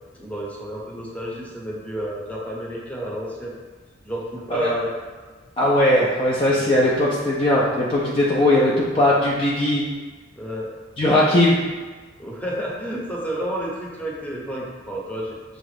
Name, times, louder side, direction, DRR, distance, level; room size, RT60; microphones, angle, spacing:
voice 1, 0.2-3.5 4.0-4.9 5.2-5.3 6.4-6.9 8.4-8.6 10.4-10.7 12.2-15.3, right 1 dB, 10° left, -4 dB, 0.8 m, -31 dB
voice 2, 5.6-9.8 11.0-11.6, left 1 dB, 30° left, -5 dB, 0.5 m, -19 dB
6.3 x 2.4 x 3.3 m, 1.4 s
head